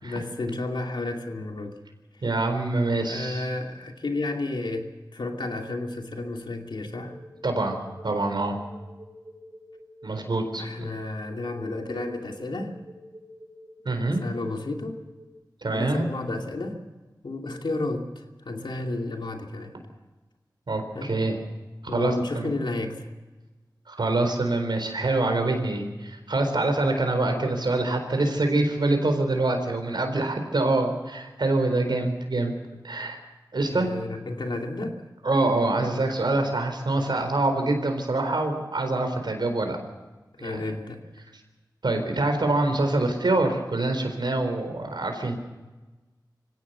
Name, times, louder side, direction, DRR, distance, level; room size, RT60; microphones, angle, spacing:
voice 1, 0.0-1.7 2.1-2.2 3.0-7.2 10.5-12.8 14.2-15.0 15.7-16.8 17.2-19.8 20.9-21.2 21.9-23.1 33.7-35.0 40.4-41.0, left 2 dB, 85° left, 3 dB, 2.6 m, -32 dB
voice 2, 2.2-3.5 7.4-8.6 10.0-10.6 13.8-14.2 15.6-16.0 20.7-21.4 21.9-22.5 23.9-32.5 32.8-33.2 33.5-33.9 35.2-39.8 40.4-40.6 41.8-45.4, right 2 dB, 75° right, 5 dB, 4.3 m, -25 dB
sound 1, 6.9-15.3, equal, 50° right, 6.1 m, -47 dB
25.5 x 17.0 x 6.8 m, 1.2 s
wide cardioid pair, 75°, 8 cm